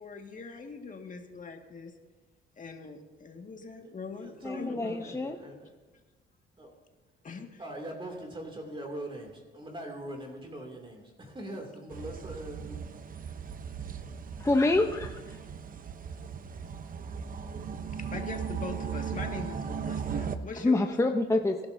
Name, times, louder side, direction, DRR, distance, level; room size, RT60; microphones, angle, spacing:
voice 1, 0.0-1.9 2.6-5.1 7.2-7.6 18.1-20.9, left 4 dB, 40° left, 3 dB, 2.0 m, -42 dB
voice 2, 3.8-5.7 6.6-6.7 7.6-12.8, right 1 dB, 25° right, 1 dB, 2.7 m, -42 dB
voice 3, 4.4-5.4 14.4-15.4 20.6-21.7, left 2 dB, 15° left, 4 dB, 0.8 m, -27 dB
sound 1, 11.9-20.4, right 7 dB, 45° right, 0.9 m, -37 dB
24.0 x 11.5 x 2.8 m, 1.3 s
cardioid pair, 90°, 20 cm